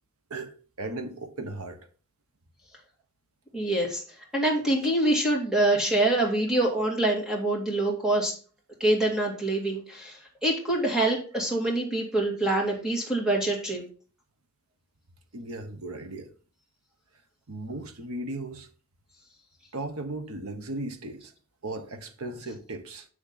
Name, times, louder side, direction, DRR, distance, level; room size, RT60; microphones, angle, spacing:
voice 1, 0.3-1.8 15.3-16.3 17.5-18.7 19.7-21.3 21.6-23.1, right 2 dB, 80° right, 1.2 m, -36 dB
voice 2, 3.5-4.0 4.3-8.3 8.8-13.8, right 1 dB, 5° right, 2.3 m, -25 dB
7.1 x 6.4 x 4.1 m
head